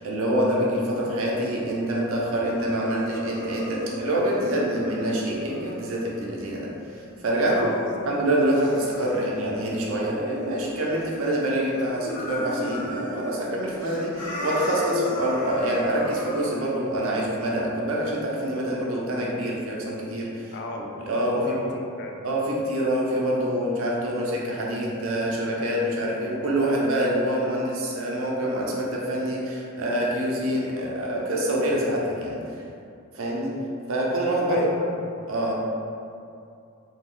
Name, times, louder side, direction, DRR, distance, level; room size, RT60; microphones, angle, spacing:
voice 1, 0.0-6.7 7.2-7.7 8.0-21.5 22.2-32.4 33.1-33.6 33.9-34.7 35.3-35.5, right 1 dB, 75° right, -3 dB, 0.6 m, -26 dB
sound 1, 1.7-11.4 11.6-13.3 13.6-16.4, left 1 dB, 80° left, 1.0 m, -36 dB
voice 2, 7.4-8.1 20.5-22.2 34.5-35.1, left 2 dB, 55° left, 1 dB, 0.4 m, -34 dB
2.7 x 2.3 x 3.6 m, 2.5 s
head